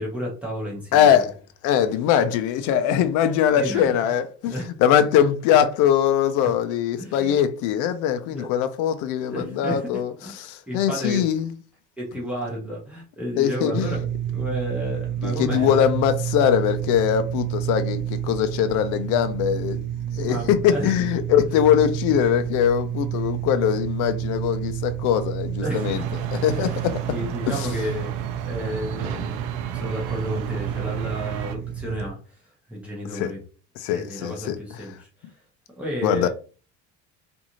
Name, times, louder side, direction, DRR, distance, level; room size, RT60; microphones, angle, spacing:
voice 1, 0.0-1.2 3.6-3.9 4.4-4.7 6.4-6.5 7.0-7.4 8.3-8.5 9.2-11.3 12.0-15.8 20.2-20.9 25.6-26.1 26.5-26.8 27.1-29.4 29.7-32.2 32.7-33.4 33.9-35.3 35.8-36.3, equal, 5° right, 0.9 m, -32 dB
voice 2, 0.9-1.3 1.6-11.5 13.4-14.0 15.2-19.8 20.1-26.0 26.3-27.0 27.5-27.8 33.1-33.3 33.8-34.6 36.0-36.3, left 9 dB, 65° left, 0.5 m, -22 dB
sound 1, 13.7-32.1, right 10 dB, 35° right, 0.4 m, -30 dB
sound 2, 25.7-31.6, right 8 dB, 85° right, 0.5 m, -34 dB
2.6 x 2.5 x 2.9 m
cardioid pair, 140°, 33 cm